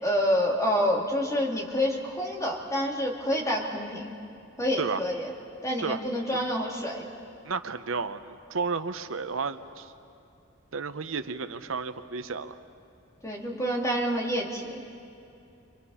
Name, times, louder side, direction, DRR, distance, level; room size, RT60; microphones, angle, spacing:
voice 1, 0.0-4.1 4.6-5.3 5.6-7.1 13.2-14.8, equal, 15° left, -1 dB, 2.7 m, -28 dB
voice 2, 7.4-9.9 10.7-12.6, right 4 dB, 80° right, 10 dB, 0.8 m, -32 dB
30.0 x 24.5 x 5.6 m, 2.6 s
head